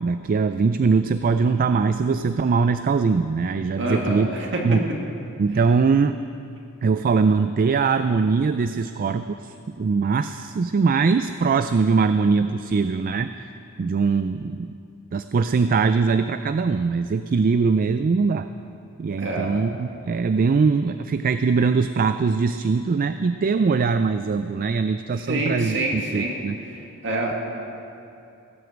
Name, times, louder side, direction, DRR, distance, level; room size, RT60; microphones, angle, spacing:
voice 1, 0.0-4.3 4.6-4.9 5.4-6.2 6.8-13.3 13.8-14.7 15.1-18.5 19.0-26.6, right 4 dB, 40° right, 10 dB, 0.3 m, -21 dB
voice 2, 3.8-4.6 19.2-19.6 25.3-26.4 26.7-27.3, right 1 dB, 60° right, -1 dB, 2.4 m, -27 dB
17.5 x 7.8 x 8.1 m, 2.6 s
head